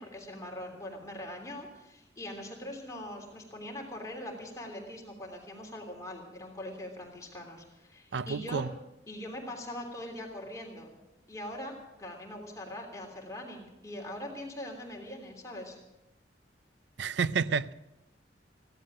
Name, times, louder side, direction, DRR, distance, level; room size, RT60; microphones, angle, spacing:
voice 1, 0.0-8.6 9.1-10.9 11.3-15.8, left 1 dB, 20° left, 3.2 m, -42 dB
voice 2, 8.1-8.7 17.0-17.7, right 5 dB, 75° right, 0.5 m, -30 dB
16.5 x 12.0 x 6.3 m
head